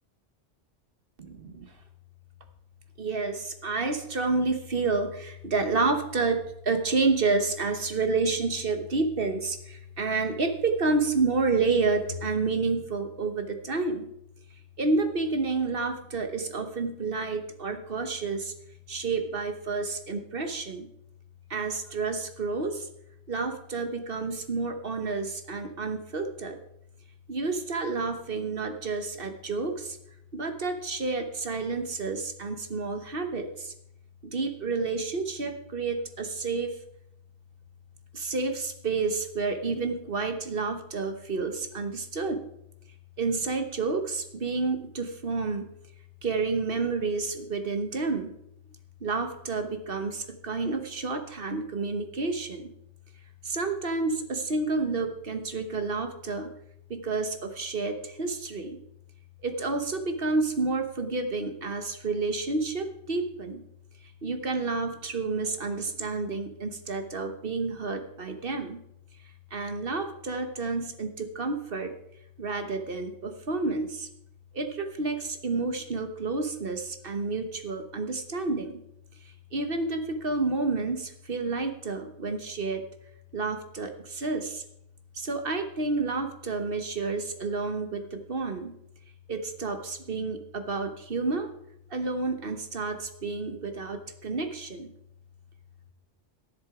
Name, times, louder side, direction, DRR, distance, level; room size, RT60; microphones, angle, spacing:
voice 1, 1.2-1.7 3.0-14.1 14.8-18.5 18.9-20.9 21.5-22.9 23.3-26.6 27.3-30.0 30.3-33.7 34.2-36.7 38.1-42.4 43.2-45.7 46.2-48.4 49.0-52.7 53.4-56.5 56.9-58.8 59.4-63.6 64.2-68.8 69.5-71.9 72.4-74.1 74.5-78.8 79.5-82.8 83.3-84.6 85.1-88.7 89.3-91.5 91.9-94.9, right 3 dB, 55° right, 7 dB, 1.4 m, -30 dB
12.5 x 11.0 x 4.9 m, 0.77 s
omnidirectional pair, 1.2 m